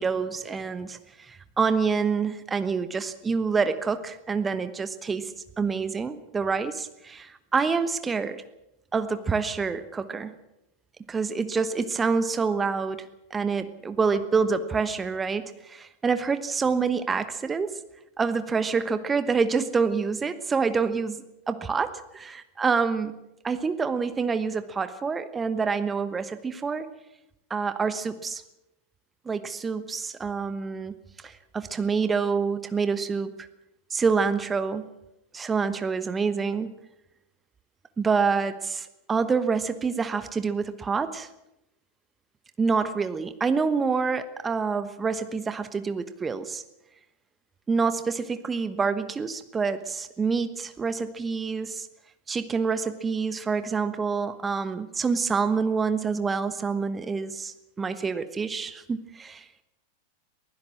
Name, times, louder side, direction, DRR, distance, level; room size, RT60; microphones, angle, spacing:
voice 1, 0.0-8.4 8.9-10.4 11.1-13.0 13.3-17.8 18.2-23.2 23.4-26.9 27.5-28.4 29.2-30.9 31.2-33.5 33.9-34.9 35.3-36.7 38.0-41.3 42.6-46.6 47.7-51.9 52.3-59.5, right 5 dB, 15° right, 12 dB, 1.1 m, -27 dB
23.0 x 16.0 x 7.3 m, 0.91 s
figure-of-eight pair, 90°, 0 cm